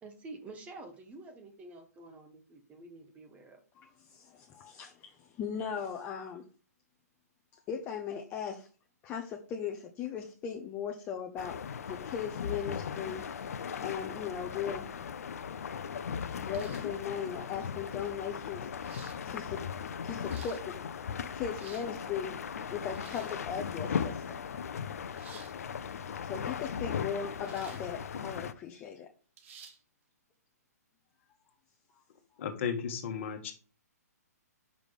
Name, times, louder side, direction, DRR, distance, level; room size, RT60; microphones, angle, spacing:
voice 1, 0.0-3.6, right 2 dB, 15° right, 5 dB, 1.0 m, -49 dB
voice 2, 3.7-6.4 7.5-8.7 9.0-11.6 11.9-13.4 13.8-14.9 16.5-18.7 19.2-19.6 20.0-20.8 21.3-22.4 22.7-24.4 26.2-29.1, left 7 dB, 20° left, 3 dB, 0.7 m, -38 dB
sound 1, 11.4-28.5, left 7 dB, 60° left, 0.6 m, -38 dB
sound 2, 16.5-17.0 18.0-18.1 18.8-19.2 20.0-20.6 21.4-21.9 22.9-23.4 25.1-25.5 27.4-27.9 28.3-28.4 29.4-29.8, right 7 dB, 50° right, 1.1 m, -53 dB
voice 3, 32.4-33.5, left 7 dB, 45° left, 6 dB, 1.4 m, -34 dB
5.3 x 4.9 x 4.9 m, 0.39 s
figure-of-eight pair, 130°, 9 cm